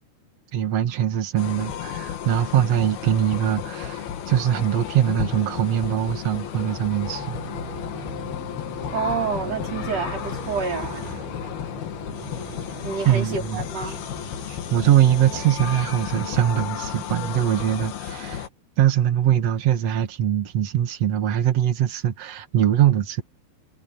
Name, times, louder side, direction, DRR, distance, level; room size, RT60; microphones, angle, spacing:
voice 1, 0.5-7.4 13.1-13.6 13.9-14.0 14.5-18.5 18.8-23.2, right 11 dB, 55° right, 1.9 m, -22 dB
sound 1, 1.4-18.5, left 9 dB, 65° left, 3.7 m, -33 dB
Motorcycle, 7.0-17.6, right 9 dB, 80° right, 4.2 m, -41 dB
voice 2, 8.9-11.0 12.8-14.0, right 5 dB, 35° right, 5.6 m, -28 dB
omnidirectional pair, 5.0 m